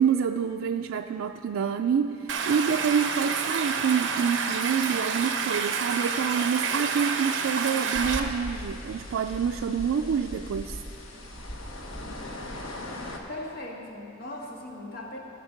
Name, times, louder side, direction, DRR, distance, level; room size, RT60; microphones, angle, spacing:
voice 1, 0.0-10.8, right 7 dB, 90° right, 5 dB, 0.3 m, -27 dB
Stream, 2.3-8.2, right 5 dB, 60° right, 0.9 m, -29 dB
sound 1, 7.9-13.2, left 1 dB, 80° left, 1.2 m, -38 dB
voice 2, 13.3-15.2, left 1 dB, 50° left, -1 dB, 1.5 m, -38 dB
15.5 x 7.1 x 5.2 m, 2.7 s
head